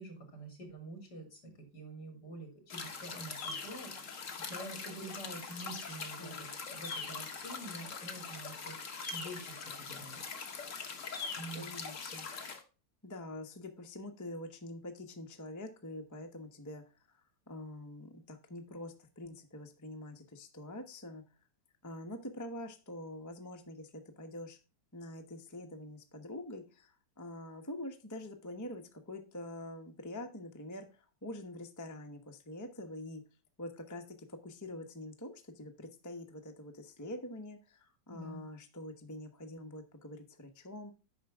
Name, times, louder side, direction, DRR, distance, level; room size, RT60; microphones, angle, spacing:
voice 1, 0.0-4.2 4.5-10.2 11.3-11.8 38.1-38.4, right 2 dB, 65° left, 4 dB, 3.3 m, -47 dB
sound 1, 2.7-12.6, left 5 dB, 50° left, 1.4 m, -42 dB
voice 2, 6.2-6.6 11.6-12.3 13.0-17.2 17.5-21.2 21.8-24.6 24.9-33.2 33.6-40.9, left 1 dB, 15° left, 4 dB, 0.8 m, -45 dB
9.5 x 5.9 x 3.5 m, 0.32 s
omnidirectional pair, 1.9 m